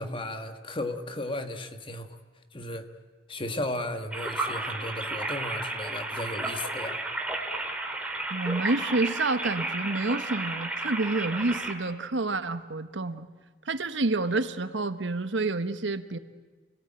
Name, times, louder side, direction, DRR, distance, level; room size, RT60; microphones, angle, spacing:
voice 1, 0.0-2.1 2.5-2.9 3.3-7.0, left 1 dB, 30° left, 8 dB, 1.5 m, -35 dB
sound 1, 4.1-11.7, right 2 dB, 5° right, 2.4 m, -33 dB
voice 2, 8.3-13.3 13.7-16.2, right 2 dB, 80° right, 11 dB, 1.2 m, -28 dB
28.0 x 18.5 x 8.9 m, 1.4 s
head